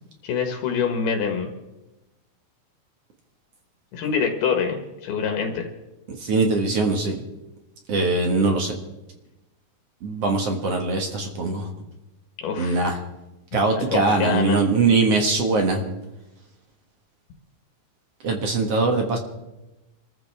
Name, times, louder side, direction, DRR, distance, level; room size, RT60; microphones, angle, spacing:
voice 1, 0.2-1.5 3.9-5.7 12.4-12.8 13.8-14.6, left 6 dB, 75° left, 3 dB, 3.3 m, -25 dB
voice 2, 6.1-7.2 7.9-8.7 10.0-11.7 12.6-13.0 13.5-15.8 18.2-19.2, right 3 dB, 50° right, 3 dB, 2.0 m, -22 dB
27.0 x 14.0 x 3.5 m, 0.98 s
omnidirectional pair, 4.7 m